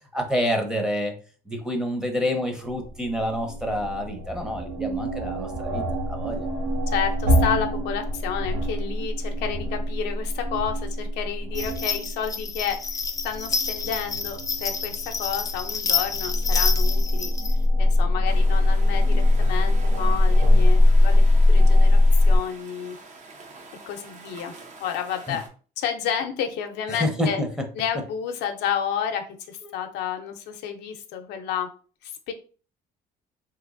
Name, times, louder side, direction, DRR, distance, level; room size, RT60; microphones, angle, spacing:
voice 1, 0.1-1.1 1.5-6.5 25.3-25.4 26.9-27.5 29.6-29.7, equal, 5° right, 3 dB, 0.7 m, -28 dB
sound 1, 2.7-22.4, left 1 dB, 75° right, 1.1 m, -22 dB
voice 2, 6.9-12.8 13.2-17.3 17.8-22.0 22.3-23.0 23.9-24.5 24.8-25.4 25.8-27.4 27.8-31.7 32.0-32.3, left 8 dB, 85° left, 5 dB, 0.6 m, -30 dB
sound 2, 11.6-17.5, left 5 dB, 20° left, 0.3 m, -29 dB
sound 3, 18.3-25.5, right 3 dB, 45° right, 0.7 m, -45 dB
3.1 x 3.0 x 2.5 m, 0.39 s
cardioid pair, 110°, 17 cm